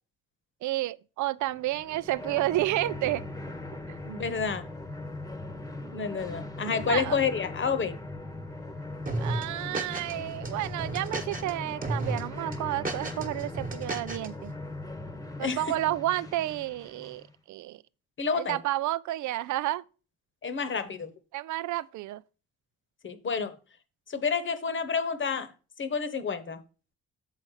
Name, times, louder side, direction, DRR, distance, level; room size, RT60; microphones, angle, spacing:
voice 1, 0.6-3.2 3.9-4.0 6.8-7.2 9.2-14.5 15.4-17.8 18.3-19.8 21.3-22.2, right 15 dB, 75° right, 0.5 m, -31 dB
sound 1, 1.5-17.3, left 2 dB, 10° left, 1.0 m, -40 dB
voice 2, 4.0-4.7 5.9-8.0 15.4-15.6 18.2-18.6 20.4-21.1 23.0-23.6 24.1-25.5 25.8-26.6, left 5 dB, 40° left, 1.1 m, -29 dB
sound 2, 9.1-10.1 10.4-11.5 11.8-12.2 12.5-14.3, right 2 dB, 30° right, 1.3 m, -33 dB
7.4 x 4.2 x 6.4 m
cardioid pair, 90°, 30 cm